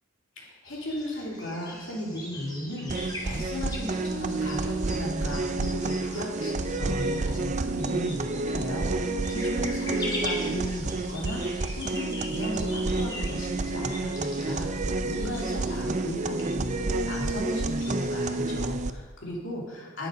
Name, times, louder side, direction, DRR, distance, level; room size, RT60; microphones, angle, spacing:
voice 1, 0.4-20.1, equal, 65° left, -3 dB, 3.0 m, -36 dB
sound 1, 0.7-18.4, left 1 dB, 20° left, 2.3 m, -42 dB
sound 2, 2.9-18.9, right 3 dB, 35° right, 0.5 m, -29 dB
11.0 x 9.1 x 5.2 m, 1.4 s
head